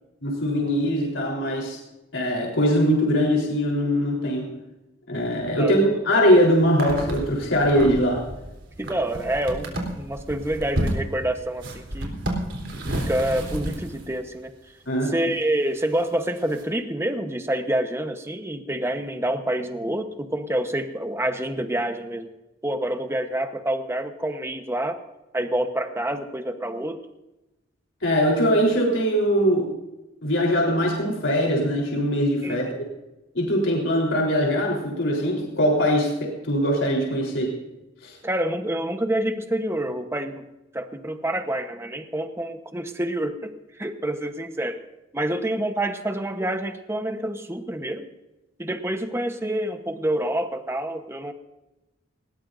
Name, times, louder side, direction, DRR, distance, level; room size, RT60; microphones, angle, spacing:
voice 1, 0.2-1.8 2.1-4.6 5.1-8.2 14.9-15.2 28.0-29.7 30.2-32.8 33.3-37.6 38.0-38.2, equal, 85° left, -2 dB, 3.8 m, -22 dB
sound 1, 6.3-6.4 6.6-14.2 15.2-15.3 15.9-16.1 16.5-16.6, right 1 dB, 80° right, 3.6 m, -31 dB
voice 2, 8.8-12.2 12.9-14.5 15.0-22.3 22.6-25.0 25.3-27.0 32.4-32.6 38.2-40.4 40.7-44.8 45.1-48.1 48.6-51.3, right 1 dB, 15° right, 7 dB, 1.0 m, -27 dB
20.0 x 19.0 x 2.6 m, 0.98 s
head